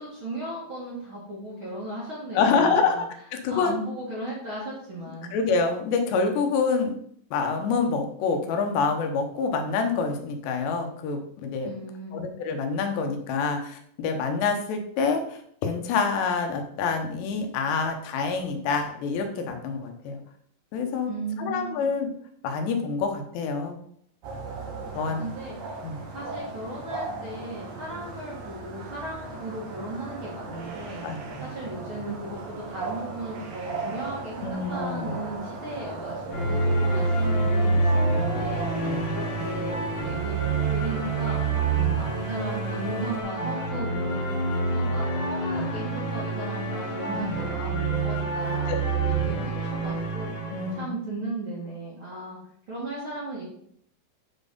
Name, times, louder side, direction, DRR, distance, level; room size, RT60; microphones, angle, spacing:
voice 1, 0.0-3.0 3.5-5.3 11.6-12.2 21.1-21.9 24.9-25.8 26.1-38.7 39.1-41.6 41.9-52.4 52.7-53.4, right 1 dB, 45° right, -6 dB, 1.9 m, -36 dB
voice 2, 2.3-3.1 3.4-3.8 5.3-6.9 7.3-11.7 12.1-20.2 20.7-21.1 21.4-22.1 22.4-23.8 25.0-25.2 25.8-26.0 31.0-31.5 34.4-35.1 38.8-39.1 41.8-42.1 47.1-47.4 48.7-48.8 50.5-50.9, left 5 dB, 85° left, 4 dB, 3.2 m, -27 dB
sound 1, 24.2-43.2, right 3 dB, 65° right, 1.7 m, -37 dB
sound 2, 36.3-50.8, right 3 dB, 35° left, 2.0 m, -27 dB
8.7 x 4.2 x 5.2 m, 0.66 s
omnidirectional pair, 4.9 m